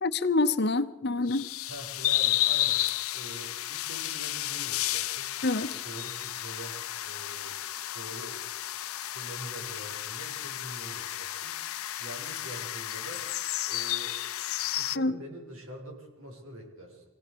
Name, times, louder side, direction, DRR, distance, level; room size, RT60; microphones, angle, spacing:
voice 1, 0.0-1.5 5.4-5.8 15.0-15.1, left 3 dB, 50° left, 11 dB, 0.9 m, -26 dB
sound 1, 1.3-15.0, left 15 dB, 80° left, 0.7 m, -32 dB
voice 2, 1.7-2.8 3.1-5.3 5.7-7.6 7.9-8.4 9.1-13.3 13.7-14.2 14.6-17.0, right 1 dB, 75° right, 0 dB, 6.8 m, -45 dB
25.5 x 17.0 x 7.0 m, 1.1 s
head